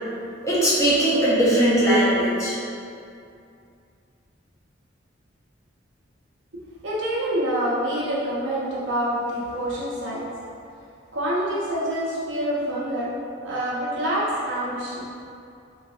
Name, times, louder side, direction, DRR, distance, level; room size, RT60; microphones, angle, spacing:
voice 1, 0.4-2.5, right 1 dB, 15° left, -9 dB, 0.6 m, -19 dB
voice 2, 6.8-10.3 11.1-13.1 13.4-15.0, right 1 dB, 80° right, -7 dB, 0.7 m, -26 dB
3.2 x 2.5 x 2.4 m, 2.5 s
head